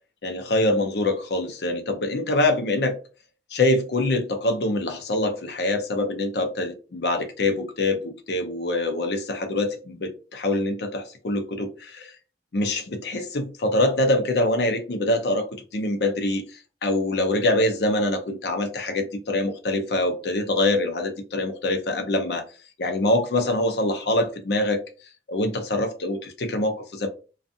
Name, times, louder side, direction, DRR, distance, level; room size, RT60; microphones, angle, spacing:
voice 1, 0.2-3.0 3.5-12.1 12.5-15.5 15.7-16.5 16.8-22.5 22.8-24.8 25.3-27.1, left 2 dB, 65° left, 0.6 m, -24 dB
2.6 x 2.4 x 2.4 m
head